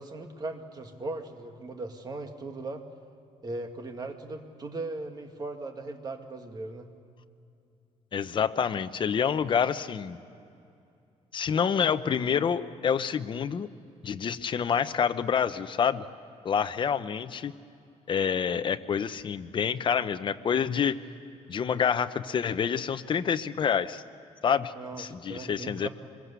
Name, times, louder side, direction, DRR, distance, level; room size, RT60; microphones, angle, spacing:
voice 1, 0.0-2.8 3.4-6.9 24.8-25.9, right 2 dB, 30° right, 5 dB, 2.0 m, -38 dB
voice 2, 8.1-10.2 11.3-13.7 14.0-16.0 16.4-17.5 18.1-21.0 21.5-24.0 24.4-25.9, left 7 dB, 40° left, 11 dB, 0.8 m, -27 dB
25.5 x 22.0 x 8.3 m, 2.5 s
cardioid pair, 140°, 13 cm